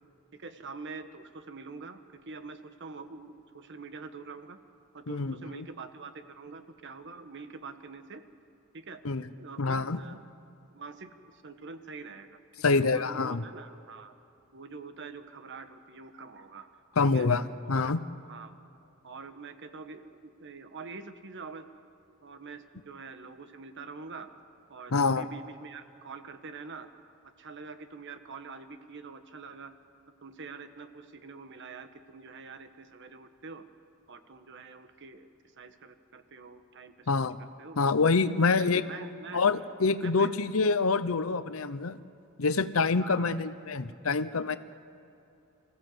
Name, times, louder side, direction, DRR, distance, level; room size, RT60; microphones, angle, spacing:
voice 1, 0.3-4.6 4.9-8.2 8.7-9.0 9.4-10.2 10.7-12.4 12.7-14.1 14.5-17.3 17.7-17.9 18.3-18.5 19.0-21.7 22.2-24.3 24.7-26.9 27.4-29.7 30.2-33.6 34.1-35.3 35.6-37.1 37.4-37.8 38.5-39.4 40.0-40.3 43.0-43.3, right 4 dB, 60° right, 9 dB, 1.2 m, -45 dB
voice 2, 5.1-5.7 9.0-9.3 9.6-10.0 12.6-13.4 17.0-18.0 24.9-25.3 37.1-37.4 37.8-38.8 39.3-42.0 42.4-44.6, left 4 dB, 75° left, 13 dB, 0.8 m, -26 dB
25.0 x 15.0 x 7.8 m, 2.8 s
head